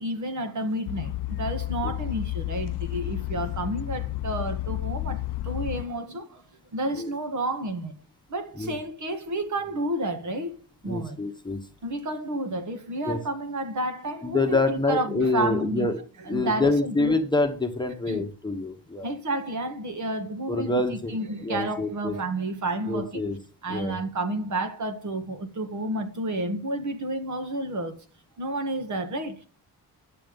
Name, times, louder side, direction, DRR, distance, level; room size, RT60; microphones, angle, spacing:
voice 1, 0.0-6.4 6.7-8.0 8.3-10.6 10.8-11.2 11.8-16.0 16.3-17.1 18.1-18.2 19.0-23.2 23.6-28.0 28.4-29.4, right 1 dB, 45° right, 1.7 m, -30 dB
sound 1, 0.9-5.8, left 16 dB, 70° left, 0.6 m, -31 dB
voice 2, 10.8-11.6 13.1-13.2 14.2-16.0 16.3-19.1 20.5-21.1 21.4-22.2 22.9-23.4 23.7-24.0, left 3 dB, 10° left, 1.3 m, -26 dB
11.0 x 7.0 x 5.4 m
cardioid pair, 125°, 41 cm